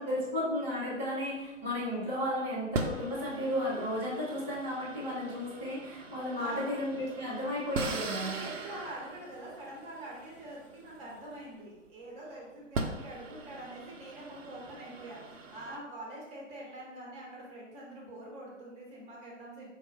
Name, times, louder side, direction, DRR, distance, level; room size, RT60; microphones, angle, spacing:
voice 1, 0.0-8.3, left 1 dB, 5° left, -20 dB, 0.4 m, -33 dB
sound 1, 1.3-2.0 2.7-11.9 12.4-12.5 12.7-15.8, right 3 dB, 70° right, 0.7 m, -41 dB
voice 2, 6.4-6.7 8.2-19.7, right 1 dB, 15° right, -3 dB, 1.0 m, -45 dB
4.5 x 2.3 x 4.4 m, 1.0 s
hypercardioid pair, 135°, 39 cm